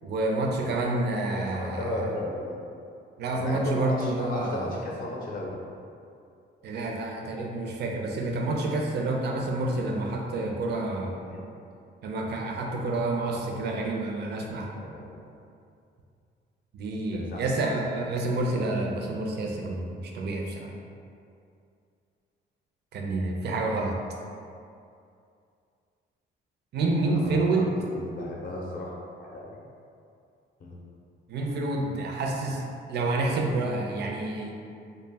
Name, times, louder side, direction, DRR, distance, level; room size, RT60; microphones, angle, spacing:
voice 1, 0.0-2.0 3.2-4.6 6.6-11.2 12.0-14.8 16.7-20.7 22.9-23.9 26.7-27.7 31.3-34.5, right 2 dB, 60° right, 0 dB, 0.4 m, -28 dB
voice 2, 0.9-2.6 3.4-5.6 11.1-11.5 13.6-13.9 14.7-15.2 17.1-17.4 27.0-27.5 27.8-29.6 30.6-30.8, left 1 dB, 45° left, -3 dB, 0.5 m, -35 dB
2.1 x 2.1 x 3.3 m, 2.5 s
cardioid pair, 90°, 20 cm